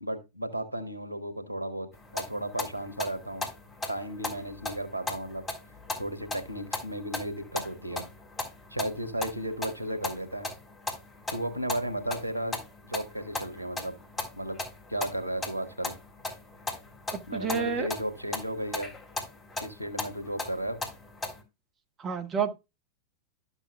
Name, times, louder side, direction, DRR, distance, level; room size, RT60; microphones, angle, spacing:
voice 1, 0.0-3.5 3.9-5.4 6.0-8.1 8.7-10.5 11.3-14.0 14.3-14.6 14.9-15.9 17.3-18.9 19.6-20.8, right 1 dB, 90° left, 1.4 m, -34 dB
sound 1, 1.9-21.4, left 2 dB, 10° left, 3.5 m, -38 dB
voice 2, 17.1-17.9 22.0-22.5, right 6 dB, 25° right, 1.6 m, -30 dB
12.5 x 7.2 x 2.3 m
figure-of-eight pair, 90°, 0 cm